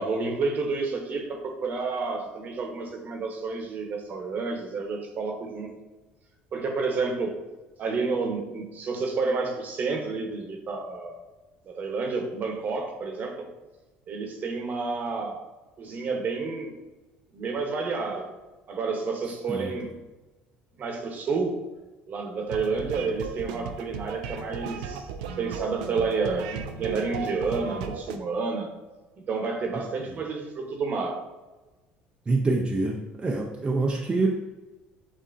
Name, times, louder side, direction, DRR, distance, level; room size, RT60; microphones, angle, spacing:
voice 1, 0.0-5.8 6.5-7.4 7.8-11.2 11.6-13.5 14.1-15.4 15.8-16.8 17.3-18.4 18.7-19.9 20.7-21.6 22.1-25.1 25.4-28.7 29.2-31.2, right 4 dB, 45° right, 3 dB, 1.0 m, -30 dB
sound 1, 22.5-28.2, right 6 dB, 85° right, 0.4 m, -36 dB
voice 2, 32.3-34.4, right 3 dB, 25° right, 0 dB, 0.5 m, -26 dB
6.9 x 2.8 x 2.6 m, 1.2 s
supercardioid pair, 85°, 4 cm